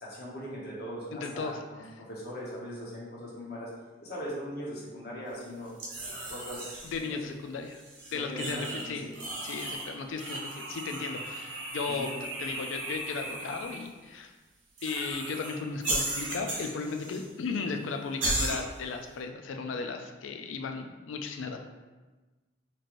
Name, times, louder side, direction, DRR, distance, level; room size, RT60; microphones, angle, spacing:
voice 1, 0.0-1.8 2.1-3.7 4.0-5.7 6.3-6.7 7.0-7.2 8.1-9.1 11.9-12.1, equal, 55° left, -6 dB, 1.1 m, -40 dB
voice 2, 1.1-1.6 6.8-7.8 8.1-9.0 9.4-12.1 12.4-14.3 14.8-21.7, left 4 dB, 90° left, 5 dB, 0.4 m, -35 dB
sound 1, 5.8-7.0 7.7-8.9 9.1-9.9 10.2-13.8 14.8-15.5 15.8-17.3 17.5-17.6 18.2-18.6, right 2 dB, 85° right, 1.1 m, -35 dB
4.3 x 3.0 x 2.6 m, 1.2 s
head